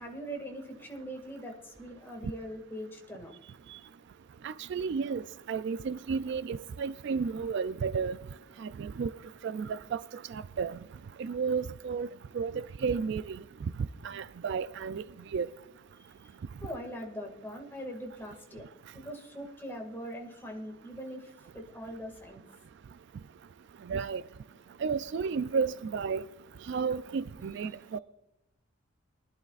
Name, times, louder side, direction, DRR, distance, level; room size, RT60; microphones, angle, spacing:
voice 1, 0.0-3.3 16.6-18.7 18.9-22.4, equal, 10° left, 2.0 m, -42 dB
voice 2, 4.4-5.2 5.5-8.2 8.6-9.1 9.4-10.8 11.2-12.1 12.3-13.4 14.0-15.0 15.3-15.5 23.9-24.2 24.8-26.2 26.7-28.0, right 5 dB, 55° right, 0.3 m, -32 dB
23.0 x 11.5 x 2.4 m
head